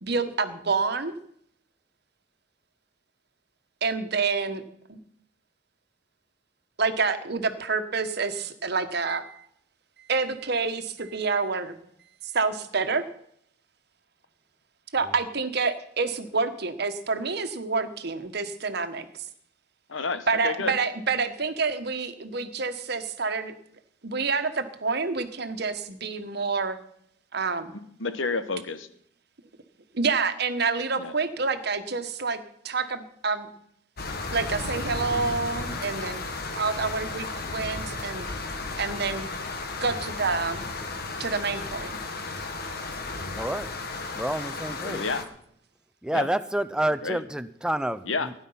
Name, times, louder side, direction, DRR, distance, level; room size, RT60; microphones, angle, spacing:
voice 1, 0.0-1.2 3.8-4.6 4.9-5.0 6.8-9.4 10.0-11.7 12.3-13.0 14.9-19.0 20.3-23.5 24.0-26.8 27.3-27.8 29.9-33.5 34.3-36.3 36.6-38.3 38.8-39.3 39.8-40.6 41.2-42.0, right 4 dB, 55° right, 9 dB, 1.3 m, -28 dB
voice 2, 19.9-20.8 28.0-28.9 31.0-31.1 44.8-45.3 46.1-46.3 47.0-47.2 48.1-48.3, left 4 dB, 85° left, 11 dB, 1.2 m, -30 dB
sound 1, 34.0-45.2, left 3 dB, 50° left, 1.6 m, -34 dB
voice 3, 43.3-43.8 44.1-45.0 46.0-48.3, right 1 dB, 5° right, 13 dB, 0.6 m, -29 dB
17.0 x 10.0 x 5.7 m, 0.69 s
head